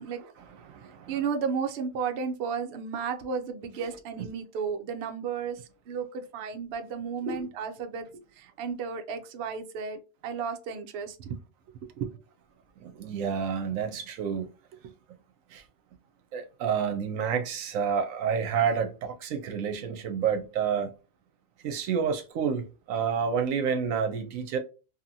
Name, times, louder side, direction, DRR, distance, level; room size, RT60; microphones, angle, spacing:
voice 1, 0.2-1.2 7.2-7.5 12.8-14.5 15.5-15.6 16.3-20.9 21.6-24.6, right 7 dB, 80° right, 1.0 m, -29 dB
voice 2, 1.1-5.6 5.9-8.0 8.4-11.4 11.8-12.2, right 6 dB, 60° right, 0.7 m, -33 dB
2.8 x 2.5 x 2.6 m
omnidirectional pair, 1.4 m